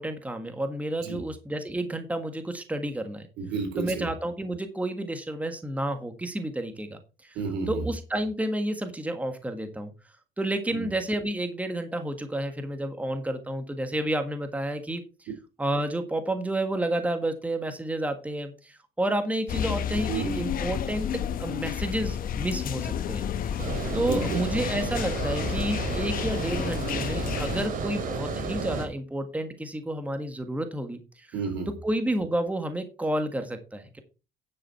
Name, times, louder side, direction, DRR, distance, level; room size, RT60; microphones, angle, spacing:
voice 1, 0.0-3.3 3.8-7.4 7.7-9.9 10.4-15.3 15.6-23.6 23.9-31.3 31.8-34.0, right 1 dB, 10° right, 1.6 m, -30 dB
voice 2, 3.4-4.1 7.4-7.8 10.7-10.9 20.1-20.4 24.0-24.4 31.3-31.7, right 4 dB, 85° right, 4.2 m, -31 dB
sound 1, 19.5-27.7, left 9 dB, 55° left, 1.1 m, -31 dB
Water, 23.6-28.9, right 4 dB, 55° right, 3.2 m, -32 dB
10.0 x 7.3 x 4.4 m
cardioid pair, 110°, 17 cm